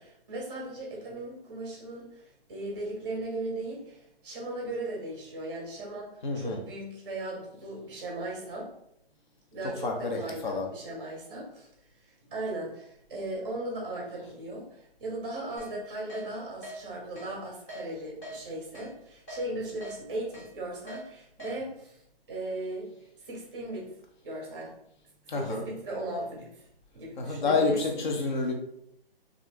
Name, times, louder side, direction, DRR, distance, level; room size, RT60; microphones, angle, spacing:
voice 1, 0.0-8.7 9.5-11.7 12.3-22.0 22.3-22.9 23.3-23.9 24.2-24.7 25.3-26.5 26.9-27.8, right 1 dB, 25° right, -2 dB, 0.6 m, -37 dB
voice 2, 6.2-6.6 9.6-10.7 25.3-25.6 27.2-28.5, left 3 dB, 50° left, 3 dB, 0.6 m, -29 dB
Keyboard (musical), 15.6-15.7 16.1-16.2 16.6-16.8 17.2-17.3 17.7-17.8 18.2-18.4 18.7-18.9 19.3-19.4 19.8-19.9 20.3-20.5 20.9-21.0 21.4-21.5, equal, 15° left, 0.7 m, -41 dB
2.4 x 2.1 x 3.3 m, 0.75 s
hypercardioid pair, 160°, 30 cm